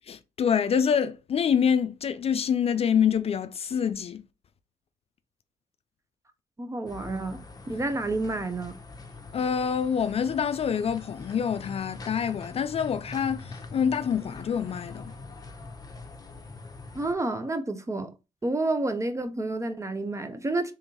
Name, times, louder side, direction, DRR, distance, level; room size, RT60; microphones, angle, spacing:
voice 1, 0.1-4.2 9.3-15.1, left 7 dB, 45° left, 0.4 m, -26 dB
voice 2, 6.6-8.7 16.9-18.1 18.4-20.7, right 2 dB, 20° right, 0.6 m, -29 dB
sound 1, 6.9-17.1, left 3 dB, 25° left, 0.9 m, -43 dB
3.5 x 3.4 x 2.9 m
supercardioid pair, 65°, 14 cm